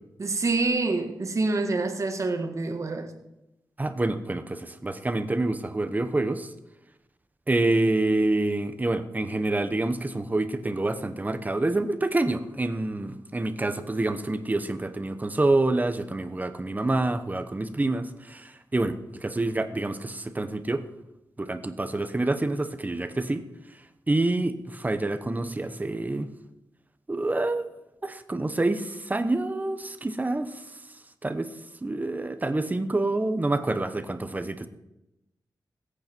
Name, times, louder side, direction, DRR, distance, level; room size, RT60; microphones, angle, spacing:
voice 1, 0.2-3.1, right 3 dB, 45° right, 5 dB, 1.7 m, -26 dB
voice 2, 3.8-6.5 7.5-20.8 21.4-23.4 24.1-26.3 27.1-27.7 28.0-30.5 31.2-31.5 31.8-34.7, right 2 dB, 25° right, 10 dB, 1.1 m, -27 dB
20.0 x 8.7 x 4.6 m, 0.90 s
wide cardioid pair, 105°, 7 cm